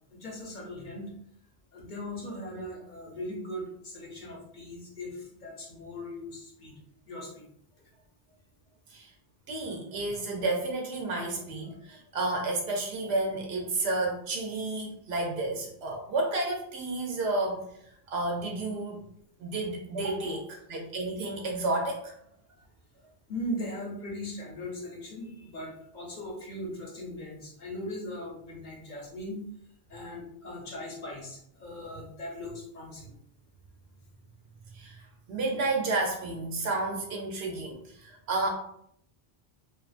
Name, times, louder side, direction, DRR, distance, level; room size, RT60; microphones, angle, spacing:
voice 1, 0.1-1.1 1.7-6.7 7.0-7.5 23.3-29.4 29.9-33.1, left 1 dB, 50° left, -2 dB, 0.8 m, -39 dB
voice 2, 9.5-19.0 19.4-22.2 34.7-38.5, right 2 dB, 85° right, 0 dB, 0.8 m, -31 dB
2.6 x 2.3 x 2.4 m, 0.70 s
omnidirectional pair, 1.0 m